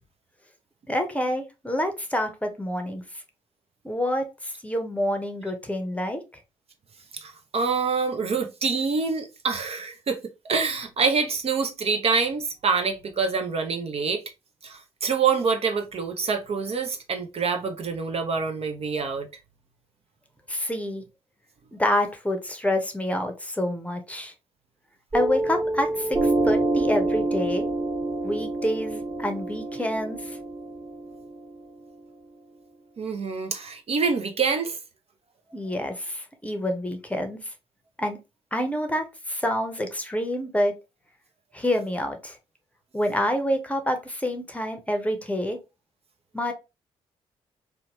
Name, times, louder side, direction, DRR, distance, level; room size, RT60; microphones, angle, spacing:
voice 1, 0.9-3.0 3.8-6.2 20.5-21.0 21.7-24.3 25.1-27.7 28.2-30.4 35.5-37.4 38.0-38.2 38.5-40.8 41.5-42.4 42.9-45.6 46.3-46.5, left 1 dB, 10° left, 0.7 m, -27 dB
voice 2, 7.1-10.2 10.5-14.2 14.6-19.3 33.0-34.8, right 5 dB, 45° right, 0.5 m, -26 dB
Piano, 25.1-32.2, right 2 dB, 30° right, 1.3 m, -27 dB
2.7 x 2.2 x 2.9 m
hypercardioid pair, 45°, 14 cm